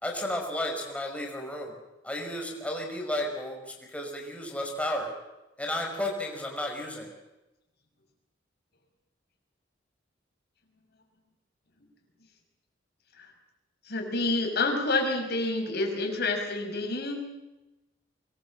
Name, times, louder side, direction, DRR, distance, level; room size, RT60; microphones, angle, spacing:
voice 1, 0.0-1.8 2.0-5.1 5.6-7.1, left 1 dB, 5° left, 1 dB, 5.6 m, -33 dB
voice 2, 13.8-17.2, left 2 dB, 55° left, 4 dB, 5.9 m, -28 dB
24.5 x 22.0 x 7.6 m, 0.99 s
head